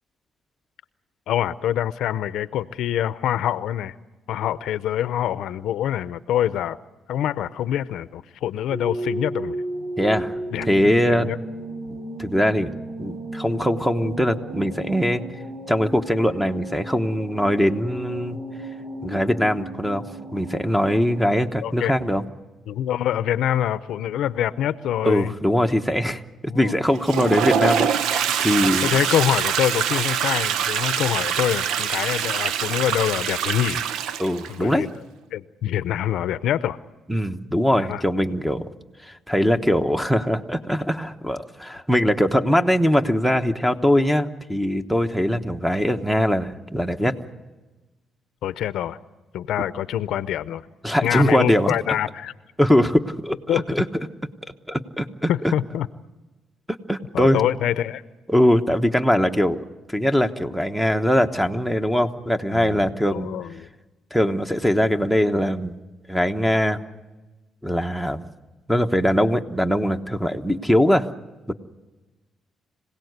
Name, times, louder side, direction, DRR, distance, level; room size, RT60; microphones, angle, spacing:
voice 1, 1.3-3.9 4.3-6.8 7.1-9.6 10.5-11.4 21.2-21.3 21.6-22.0 22.7-25.3 25.9-26.1 26.5-26.8 27.6-27.8 28.3-28.4 28.8-33.8 34.5-34.9 35.3-36.8 37.8-38.0 48.4-49.0 49.3-50.6 51.0-52.3 53.5-53.6 55.3-55.9 57.1-58.0 62.5-62.8 63.1-63.7, left 11 dB, 80° left, 15 dB, 0.6 m, -25 dB
sound 1, 8.7-21.2, right 1 dB, 70° right, 7.3 m, -34 dB
voice 2, 10.0-11.3 12.2-12.7 13.0-15.2 15.7-18.4 19.0-20.0 20.3-22.2 25.0-28.9 34.2-34.9 37.1-38.6 39.0-47.1 50.8-51.7 52.6-53.8 54.7-55.5 56.9-57.4 58.3-63.3 64.1-65.7 66.1-66.8 67.6-68.3 68.7-71.1 71.5-71.6, equal, ahead, 8 dB, 1.1 m, -21 dB
Toilet flush, 26.9-34.5, right 8 dB, 85° right, 0.7 m, -24 dB
26.0 x 17.5 x 8.1 m, 1.2 s
cardioid pair, 100°, 0 cm